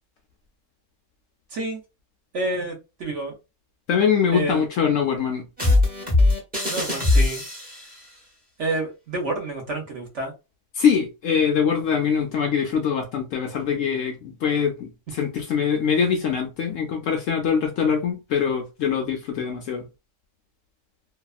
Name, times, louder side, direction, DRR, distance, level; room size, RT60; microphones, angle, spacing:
voice 1, 1.5-1.8 2.3-3.3 4.3-4.6 6.7-7.4 8.6-10.3, right 2 dB, 50° right, 1.0 m, -29 dB
voice 2, 3.9-5.5 10.8-14.9 15.2-19.8, left 7 dB, 80° left, 0.7 m, -23 dB
sound 1, 5.6-7.9, left 2 dB, 10° right, 0.5 m, -20 dB
2.7 x 2.3 x 2.3 m
omnidirectional pair, 1.8 m